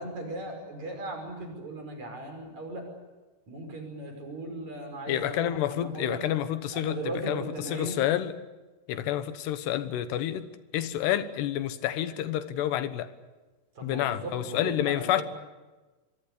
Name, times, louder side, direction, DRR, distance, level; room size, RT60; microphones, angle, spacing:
voice 1, 0.0-2.9 3.5-6.3 6.7-8.0 13.7-15.2, right 1 dB, 45° right, 4 dB, 6.8 m, -37 dB
voice 2, 5.1-8.4 8.9-13.1 13.8-15.2, left 12 dB, 90° left, 12 dB, 3.3 m, -29 dB
26.0 x 23.0 x 8.3 m, 1.2 s
omnidirectional pair, 4.7 m